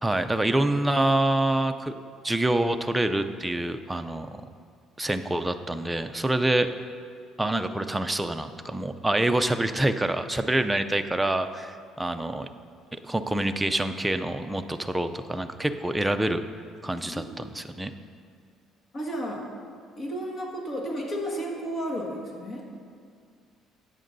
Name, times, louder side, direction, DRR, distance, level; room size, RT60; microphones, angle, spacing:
voice 1, 0.0-1.9 2.2-4.3 5.0-6.7 7.4-12.5 12.9-16.4 16.8-17.9, right 1 dB, 10° right, 8 dB, 0.4 m, -26 dB
voice 2, 18.9-19.4 20.0-22.7, equal, 40° left, -1 dB, 1.7 m, -32 dB
14.0 x 8.6 x 2.7 m, 2.2 s
cardioid pair, 120°, 0 cm